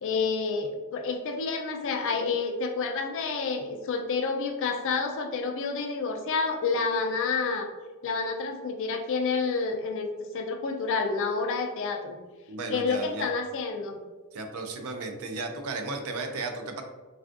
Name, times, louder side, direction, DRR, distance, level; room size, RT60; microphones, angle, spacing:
voice 1, 0.0-7.7 8.0-12.2 12.7-14.0, left 4 dB, 60° left, 4 dB, 0.4 m, -29 dB
voice 2, 12.5-13.3 14.3-16.8, right 3 dB, 70° right, 5 dB, 0.4 m, -34 dB
3.3 x 2.4 x 2.5 m, 1.3 s
head